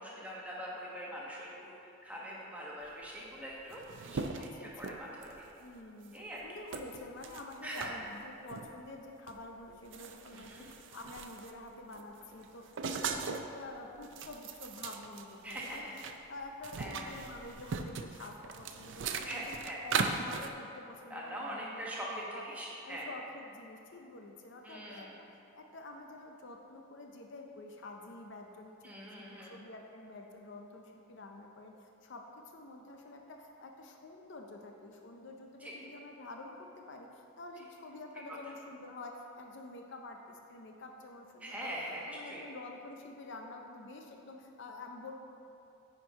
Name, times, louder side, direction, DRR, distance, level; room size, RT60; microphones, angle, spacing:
voice 1, 0.0-1.7 2.0-5.4 6.1-6.4 7.6-8.0 10.3-10.7 15.4-15.9 16.8-17.2 19.3-19.8 21.1-23.1 24.6-25.1 28.8-29.6 35.6-35.7 41.4-42.4, equal, 5° right, -5 dB, 1.1 m, -43 dB
sound 1, 3.2-3.3 3.5-5.5 6.0-6.2 6.7-7.9 8.5-8.7 9.3-9.4 9.7-11.6 11.9-13.5 13.9-16.1 16.4-20.5, right 5 dB, 55° right, 0.4 m, -39 dB
voice 2, 4.3-5.0 5.6-15.8 16.3-19.5 19.8-22.4 22.8-25.3 25.5-41.8 42.1-45.1, left 2 dB, 55° left, 2 dB, 0.6 m, -48 dB
9.7 x 4.4 x 4.7 m, 2.8 s
head